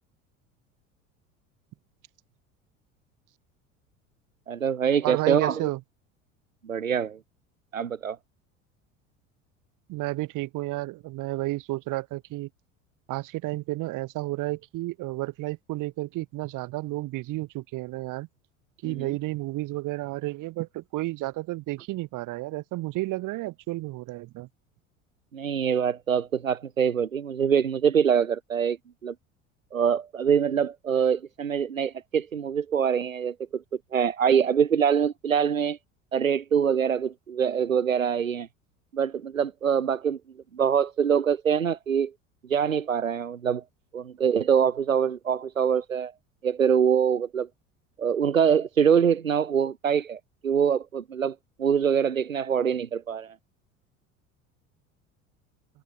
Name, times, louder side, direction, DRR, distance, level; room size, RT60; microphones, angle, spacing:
voice 1, 4.5-5.6 6.6-7.2 7.7-8.2 18.9-19.1 25.3-28.8 29.0-29.1 29.7-33.6 33.9-35.8 36.1-38.5 38.9-40.2 40.5-42.1 42.5-43.6 43.9-46.1 46.4-47.5 48.0-53.3, right 7 dB, 90° right, 0.8 m, -24 dB
voice 2, 5.0-5.8 9.9-12.5 13.1-18.3 18.8-24.5, right 19 dB, 50° right, 6.2 m, -31 dB
figure-of-eight pair, 70°, 39 cm